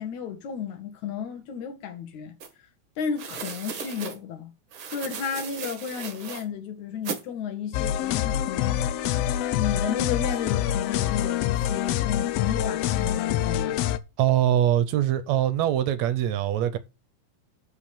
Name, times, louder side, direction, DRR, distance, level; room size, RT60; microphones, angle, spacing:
voice 1, 0.0-2.3 3.0-4.5 4.9-8.8 9.5-13.8, left 7 dB, 70° left, 3.0 m, -33 dB
sound 1, 2.4-2.5 3.1-4.2 4.7-6.4 7.0-7.2, right 6 dB, 50° right, 1.7 m, -36 dB
sound 2, 7.7-14.0, left 11 dB, 85° left, 1.4 m, -26 dB
voice 2, 14.2-16.8, right 11 dB, 70° right, 1.9 m, -23 dB
8.0 x 5.2 x 7.0 m
omnidirectional pair, 3.6 m